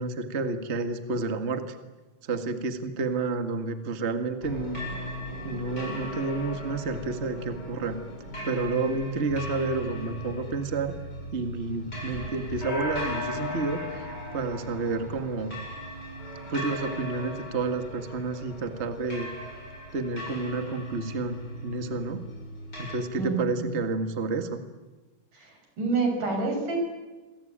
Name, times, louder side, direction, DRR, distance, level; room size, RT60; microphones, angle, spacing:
voice 1, 0.0-1.7 2.2-4.8 5.4-8.0 8.4-10.9 11.3-15.5 16.5-19.3 19.9-22.3 22.8-24.6, right 3 dB, 25° right, 8 dB, 1.7 m, -30 dB
sound 1, 4.4-23.0, equal, 30° left, 8.4 m, -37 dB
voice 2, 23.2-23.7 25.3-26.8, right 3 dB, 85° right, 3 dB, 8.4 m, -28 dB
28.5 x 23.0 x 8.9 m, 1.2 s
omnidirectional pair, 3.6 m